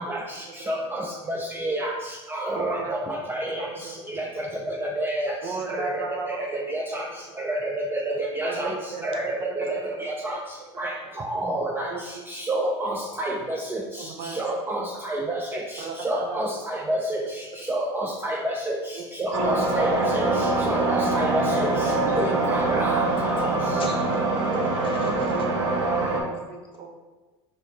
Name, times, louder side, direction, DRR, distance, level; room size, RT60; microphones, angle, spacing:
voice 1, 0.0-5.4 5.7-7.1 7.4-8.7 9.0-10.4 10.8-23.5, right 1 dB, 15° right, -1 dB, 0.5 m, -29 dB
voice 2, 2.5-2.9 3.5-4.2 5.4-6.5 7.3-7.4 8.4-10.2 11.9-12.0 12.3-12.4 14.0-15.0 15.8-16.5 17.5-17.6 18.9-19.0 19.4-19.7 20.6-21.5 25.3-26.9, right 4 dB, 55° right, 3 dB, 0.7 m, -35 dB
sound 1, 19.3-26.2, right 2 dB, 80° right, 0.9 m, -24 dB
voice 3, 23.8-25.5, left 3 dB, 35° left, 2 dB, 0.8 m, -38 dB
4.5 x 3.2 x 2.8 m, 1.2 s
hypercardioid pair, 85°, 15 cm